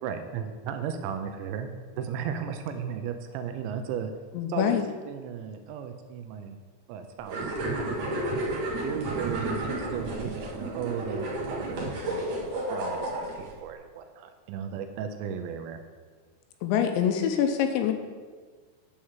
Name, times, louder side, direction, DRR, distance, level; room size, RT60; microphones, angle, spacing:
voice 1, 0.0-1.7 2.0-4.1 4.5-4.8 5.1-6.6 6.9-12.3 12.7-15.8, right 7 dB, 80° right, 7 dB, 2.8 m, -35 dB
voice 2, 4.3-4.8 16.6-17.9, left 8 dB, 80° left, 6 dB, 2.9 m, -25 dB
sound 1, 7.3-13.5, right 1 dB, 55° right, 2.5 m, -32 dB
10.5 x 4.8 x 7.2 m, 1.5 s
omnidirectional pair, 5.4 m